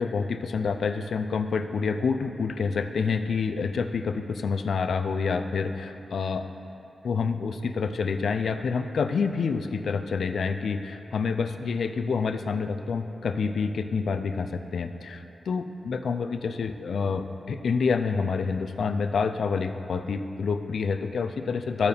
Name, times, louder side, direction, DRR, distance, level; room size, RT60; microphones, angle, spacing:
voice 1, 0.0-6.5 7.0-21.9, left 5 dB, 80° left, 9 dB, 0.4 m, -28 dB
13.5 x 4.5 x 3.4 m, 2.8 s
cardioid pair, 55°, 0 cm